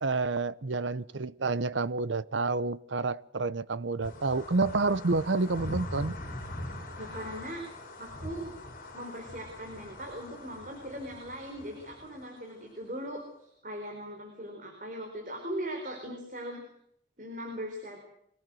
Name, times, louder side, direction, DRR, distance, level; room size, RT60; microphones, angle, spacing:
voice 1, 0.0-6.1, right 3 dB, 90° right, 0.8 m, -29 dB
sound 1, 4.0-12.8, left 1 dB, 45° left, 5.2 m, -42 dB
voice 2, 7.0-7.7 8.0-8.5 8.9-16.6 17.2-18.0, equal, 45° right, 4.6 m, -39 dB
24.5 x 17.5 x 7.7 m
head